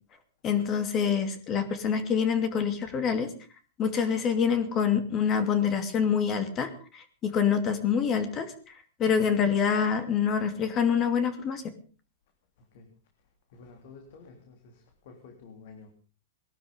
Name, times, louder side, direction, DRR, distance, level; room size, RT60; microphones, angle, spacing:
voice 1, 0.4-3.3 3.8-8.5 9.0-11.6, left 7 dB, 25° left, 2.6 m, -26 dB
voice 2, 13.5-15.9, left 4 dB, 60° left, 3.3 m, -50 dB
19.5 x 12.5 x 5.3 m
hypercardioid pair, 140°, 0 cm